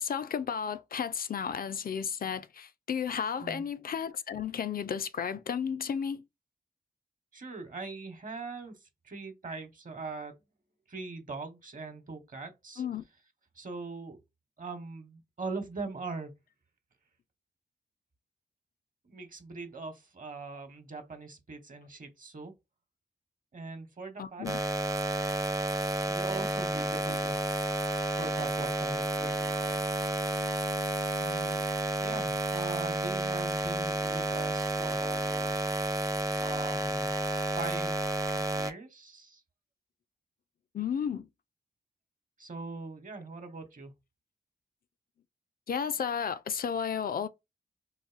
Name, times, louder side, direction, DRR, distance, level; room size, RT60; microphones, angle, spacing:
voice 1, 0.0-6.2 12.8-13.0 24.2-24.6 40.7-41.3 45.7-47.3, left 7 dB, 55° left, 0.4 m, -33 dB
voice 2, 7.3-10.4 10.9-12.8 13.5-14.2 14.6-16.4 19.0-22.5 23.5-24.5 26.1-27.7 28.2-29.8 31.2-31.7 32.0-35.7 36.4-37.1 37.6-39.4 42.4-43.9, right 3 dB, 50° right, 1.0 m, -42 dB
sound 1, 24.5-38.7, right 2 dB, 20° right, 0.5 m, -31 dB
4.0 x 2.6 x 2.4 m
cardioid pair, 55°, 18 cm